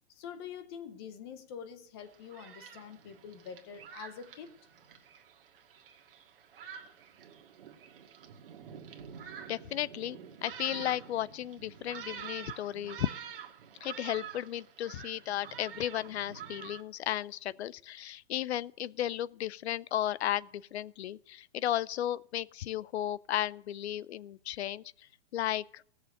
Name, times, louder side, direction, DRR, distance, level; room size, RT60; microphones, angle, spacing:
voice 1, 0.1-4.5, left 7 dB, 25° left, 0.7 m, -45 dB
Thunderstorm, 2.0-16.8, right 8 dB, 55° right, 1.7 m, -47 dB
voice 2, 9.5-13.1 13.8-25.1 25.3-25.8, left 12 dB, 75° left, 0.5 m, -34 dB
17.0 x 6.8 x 6.5 m
hypercardioid pair, 165°, 33 cm